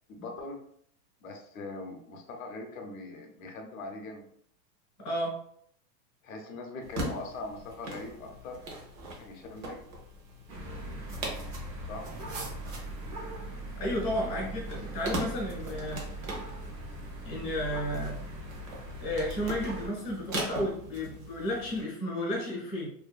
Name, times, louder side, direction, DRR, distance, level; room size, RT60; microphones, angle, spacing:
voice 1, 0.1-0.6 1.2-4.2 6.2-8.6 9.2-9.8 11.9-12.1 14.3-14.5, left 2 dB, 55° left, 3 dB, 0.6 m, -41 dB
voice 2, 5.0-5.3 13.8-16.1 17.2-18.2 19.0-22.9, left 1 dB, 10° left, -13 dB, 0.4 m, -32 dB
sound 1, 6.8-21.8, right 1 dB, 50° right, 0.8 m, -41 dB
sound 2, 10.5-19.9, right 1 dB, 85° right, 1.0 m, -40 dB
2.6 x 2.3 x 2.3 m, 0.66 s
supercardioid pair, 180°, 49 cm